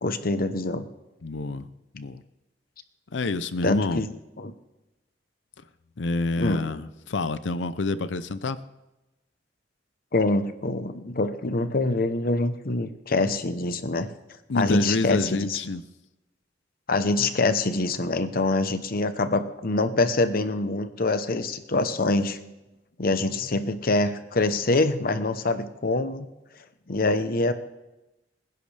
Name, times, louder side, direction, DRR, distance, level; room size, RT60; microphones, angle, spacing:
voice 1, 0.0-0.9 3.6-4.5 6.4-6.7 10.1-14.1 14.5-15.6 16.9-22.4 23.0-26.3 26.9-27.5, left 2 dB, 55° left, 10 dB, 0.9 m, -25 dB
voice 2, 1.2-1.7 1.9-2.2 3.1-4.0 6.0-8.6 14.5-15.8, left 3 dB, 80° left, 14 dB, 0.6 m, -28 dB
26.0 x 10.5 x 3.4 m, 1.0 s
head